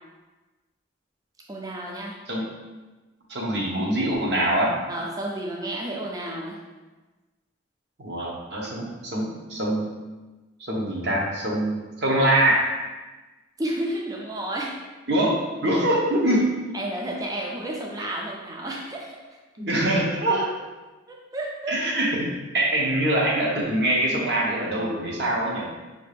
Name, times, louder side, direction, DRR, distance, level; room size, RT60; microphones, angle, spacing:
voice 1, 1.5-2.2 4.9-6.6 13.6-14.7 16.7-19.2 21.1-21.8, right 1 dB, 20° right, -1 dB, 0.4 m, -31 dB
voice 2, 3.3-4.8 8.0-9.9 10.7-12.7 15.1-16.7 19.6-20.5 21.7-25.7, right 1 dB, 60° right, -3 dB, 0.9 m, -24 dB
5.1 x 2.4 x 3.3 m, 1.2 s
head